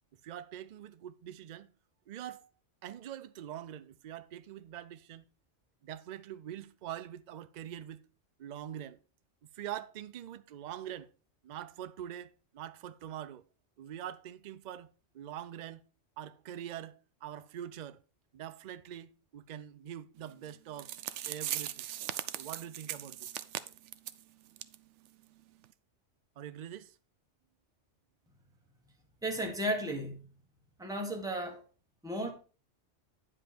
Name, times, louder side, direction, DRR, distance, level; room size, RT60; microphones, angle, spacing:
voice 1, 0.2-1.7 2.1-2.5 2.8-5.2 5.8-8.0 8.4-9.0 9.5-11.1 11.4-13.4 13.8-14.9 15.1-15.8 16.2-18.0 18.3-20.9 21.2-21.9 22.3-23.3 26.4-27.0, right 11 dB, 55° right, 0.5 m, -44 dB
sound 1, 20.5-20.6 20.8-24.2 24.6-24.7 25.0-25.1 25.6-25.7, right 12 dB, 75° right, 0.9 m, -39 dB
voice 2, 29.2-30.3 30.8-31.6 32.0-32.3, right 1 dB, 5° right, 1.4 m, -34 dB
9.8 x 5.2 x 4.3 m
omnidirectional pair, 1.2 m